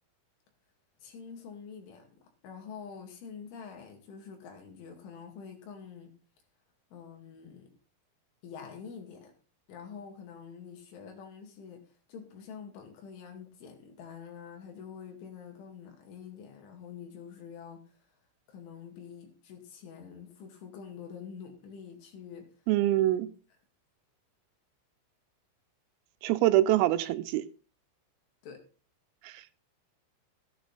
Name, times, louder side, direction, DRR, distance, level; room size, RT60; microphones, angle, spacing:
voice 1, 1.0-6.1 6.9-7.7 8.4-9.3 9.7-11.8 12.1-17.8 18.5-22.5 28.4-28.6, left 6 dB, 70° left, 4.6 m, -46 dB
voice 2, 22.7-23.3 26.2-27.5 29.2-29.7, right 15 dB, 85° right, 3.4 m, -25 dB
14.5 x 9.7 x 4.0 m
omnidirectional pair, 6.0 m